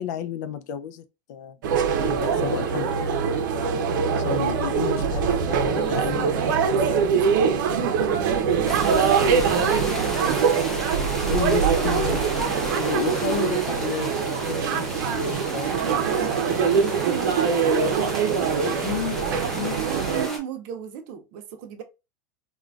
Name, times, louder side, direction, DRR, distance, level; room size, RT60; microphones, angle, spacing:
voice 1, 0.0-3.1 4.1-6.3 11.3-16.7 18.8-19.2 19.5-19.8, left 8 dB, 65° left, 0.4 m, -33 dB
sound 1, 1.6-20.3, right 6 dB, 90° right, 0.7 m, -23 dB
voice 2, 5.7-6.6 6.9-10.6 12.4-13.2 15.6-18.9 19.3-21.8, right 8 dB, 50° right, 0.6 m, -35 dB
sound 2, 8.7-20.4, equal, 5° left, 0.6 m, -34 dB
3.7 x 2.3 x 2.3 m
supercardioid pair, 165°, 10 cm